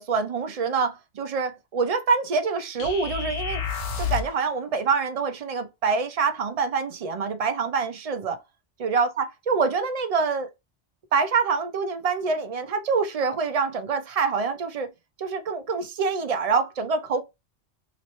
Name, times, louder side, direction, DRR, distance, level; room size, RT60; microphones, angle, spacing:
voice 1, 0.0-3.6 4.0-8.4 8.8-10.5 11.1-14.9 15.2-17.2, right 5 dB, 55° right, 0.4 m, -26 dB
sound 1, 2.8-4.4, left 7 dB, 80° left, 1.1 m, -30 dB
3.0 x 2.9 x 3.0 m
omnidirectional pair, 1.2 m